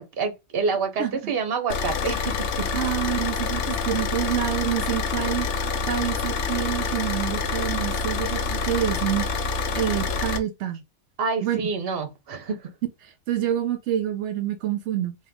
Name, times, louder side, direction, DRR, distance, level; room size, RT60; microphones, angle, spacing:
voice 1, 0.0-2.7 11.2-12.6, right 4 dB, 60° right, 1.1 m, -27 dB
voice 2, 1.0-1.3 2.7-5.5 5.9-9.3 9.7-10.8 11.4-11.6 13.0-15.2, right 11 dB, 85° right, 0.9 m, -27 dB
Car / Idling, 1.7-10.4, left 4 dB, 85° left, 0.9 m, -27 dB
3.5 x 2.7 x 3.4 m
omnidirectional pair, 1.2 m